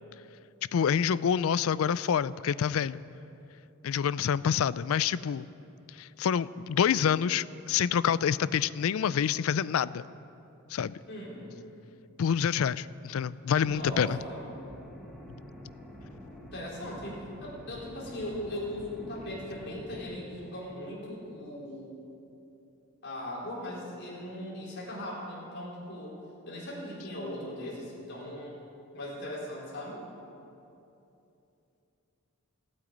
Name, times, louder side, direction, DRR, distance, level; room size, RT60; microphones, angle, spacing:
voice 1, 0.7-3.0 3.8-5.5 6.0-10.0 10.7-10.9 12.2-14.2, left 7 dB, 65° left, 18 dB, 0.3 m, -27 dB
voice 2, 11.1-11.5 13.6-14.5 16.5-21.9 23.0-26.2 26.5-28.6 28.9-30.0, left 1 dB, 50° left, -6 dB, 4.3 m, -39 dB
sound 1, 13.7-20.0, equal, ahead, 1.4 m, -47 dB
15.0 x 8.9 x 8.7 m, 2.8 s
head